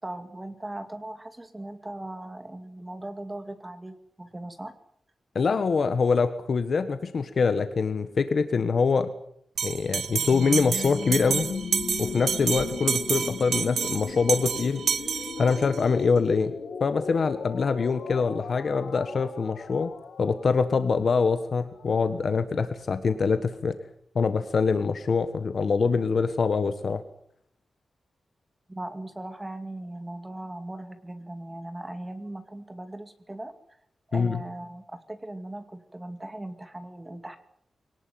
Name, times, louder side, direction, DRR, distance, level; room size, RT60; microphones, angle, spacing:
voice 1, 0.0-4.7 28.7-33.5 34.1-37.4, right 1 dB, 15° right, 9 dB, 2.3 m, -39 dB
voice 2, 5.3-9.1 9.6-11.5 12.0-14.8 15.4-16.5 16.8-19.9 20.2-23.7 24.1-27.0 34.1-34.4, left 5 dB, 50° left, 10 dB, 1.5 m, -24 dB
Bell, 9.6-15.8, right 7 dB, 85° right, 1.1 m, -29 dB
sound 1, 10.0-21.8, left 5 dB, 70° left, 2.9 m, -37 dB
23.0 x 18.5 x 9.4 m, 0.69 s
wide cardioid pair, 160°, 0 cm